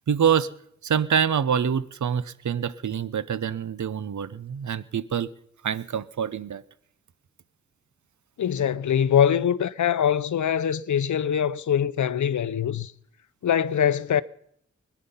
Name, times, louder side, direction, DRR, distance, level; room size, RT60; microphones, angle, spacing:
voice 1, 0.1-0.5 0.8-5.3 5.6-6.6, right 8 dB, 75° right, 0.8 m, -25 dB
voice 2, 8.4-12.9 13.4-14.2, left 8 dB, 80° left, 0.6 m, -23 dB
21.5 x 10.5 x 5.6 m
wide cardioid pair, 95°, 29 cm